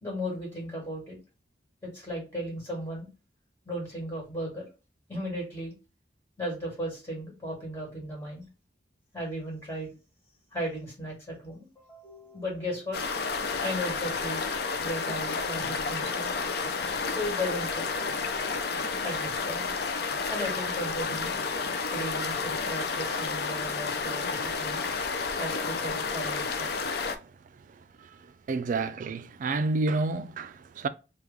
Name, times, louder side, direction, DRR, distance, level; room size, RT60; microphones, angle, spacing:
voice 1, 0.0-1.2 1.8-3.1 3.7-4.6 5.1-5.7 6.4-8.4 9.1-9.9 10.5-13.2 13.6-14.5 14.8-16.3 17.1-17.9 19.0-19.7 20.3-21.3 21.9-24.8 25.4-26.7, equal, 15° left, 1.9 m, -36 dB
sound 1, 12.9-27.2, left 4 dB, 60° left, 0.4 m, -31 dB
voice 2, 28.5-30.9, right 3 dB, 45° right, 0.3 m, -29 dB
3.3 x 2.3 x 3.4 m
head